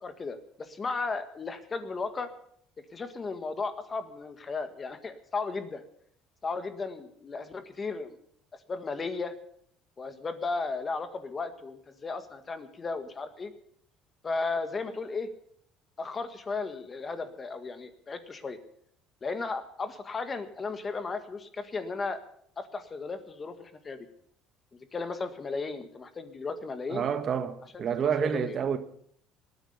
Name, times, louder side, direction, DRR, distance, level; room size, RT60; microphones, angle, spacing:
voice 1, 0.0-2.3 2.9-5.8 6.4-8.2 8.7-9.3 10.0-13.5 14.2-15.3 16.0-18.6 19.2-22.2 22.6-24.1 24.9-27.0 27.7-27.8 28.2-28.6, left 4 dB, 25° left, 1.7 m, -35 dB
voice 2, 26.9-28.8, right 7 dB, 45° right, 1.3 m, -29 dB
19.0 x 9.9 x 7.0 m
cardioid pair, 120°, 0 cm